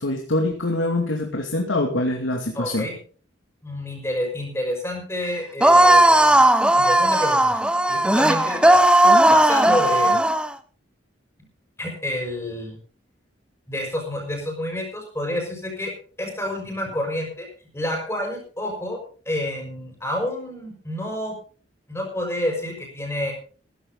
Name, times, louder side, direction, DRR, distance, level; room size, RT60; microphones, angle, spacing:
voice 1, 0.0-2.9, left 2 dB, 85° left, 2 dB, 2.5 m, -24 dB
voice 2, 2.5-3.0 3.6-6.4 6.8-7.6 7.9-8.8 9.3-10.1 11.8-12.8 13.7-17.5 17.7-19.0 19.3-21.4 21.9-23.3, left 1 dB, 15° left, 1 dB, 5.7 m, -29 dB
sound 1, 5.6-10.5, right 1 dB, 5° right, 0.7 m, -16 dB
15.5 x 14.0 x 4.0 m, 0.41 s
head